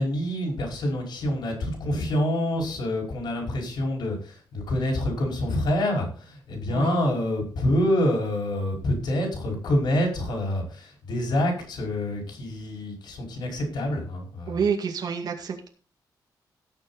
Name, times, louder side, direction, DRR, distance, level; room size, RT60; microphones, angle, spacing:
voice 1, 0.0-14.6, left 1 dB, 75° left, 1 dB, 5.1 m, -27 dB
voice 2, 14.5-15.7, right 6 dB, 60° right, 3 dB, 2.2 m, -28 dB
17.0 x 7.0 x 4.1 m, 0.39 s
wide cardioid pair, 170°, 8 cm